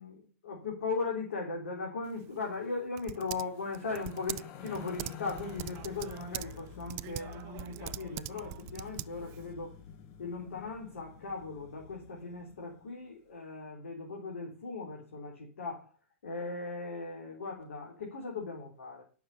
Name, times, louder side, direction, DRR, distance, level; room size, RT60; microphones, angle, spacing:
voice 1, 0.0-9.7 10.2-15.9 16.2-19.0, left 4 dB, 70° left, -1 dB, 3.5 m, -38 dB
Typing, 2.0-9.5, right 18 dB, 40° right, 0.5 m, -44 dB
sound 1, 3.6-12.9, left 8 dB, 40° left, 2.1 m, -49 dB
11.0 x 7.0 x 5.6 m, 0.39 s
hypercardioid pair, 105°, 7 cm